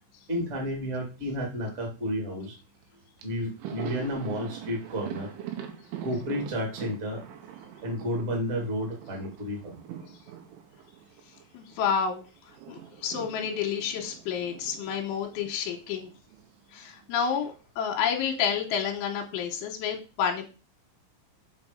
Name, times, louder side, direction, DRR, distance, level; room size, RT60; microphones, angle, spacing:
voice 1, 0.3-2.5 3.2-5.3 6.0-7.2 7.8-9.7, equal, 25° right, 0 dB, 1.8 m, -31 dB
Thunder, 2.8-2.9 3.2-12.0 12.3-16.6 16.8-17.0 18.2-18.9, right 9 dB, 80° right, 3.7 m, -43 dB
voice 2, 11.5-12.2 12.7-16.1 16.7-20.5, left 7 dB, 80° left, 2 dB, 3.3 m, -29 dB
7.9 x 5.3 x 5.2 m, 0.33 s
omnidirectional pair, 5.7 m